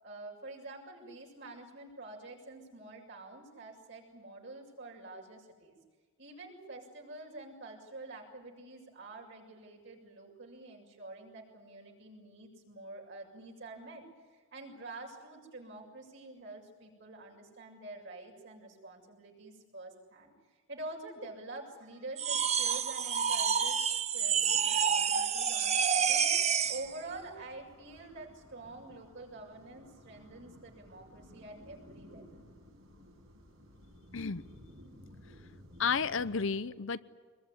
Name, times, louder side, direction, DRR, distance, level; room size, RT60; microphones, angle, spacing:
voice 1, 0.0-5.8 6.2-23.8 24.1-26.3 26.7-32.5, right 2 dB, 60° right, -1 dB, 6.9 m, -47 dB
sound 1, 22.2-26.9, right 7 dB, 30° right, 0.9 m, -28 dB
sound 2, 26.6-36.4, equal, 75° right, 6.7 m, -56 dB
voice 2, 35.8-37.0, left 5 dB, 60° left, 14 dB, 0.8 m, -31 dB
25.0 x 22.0 x 9.8 m, 1.5 s
head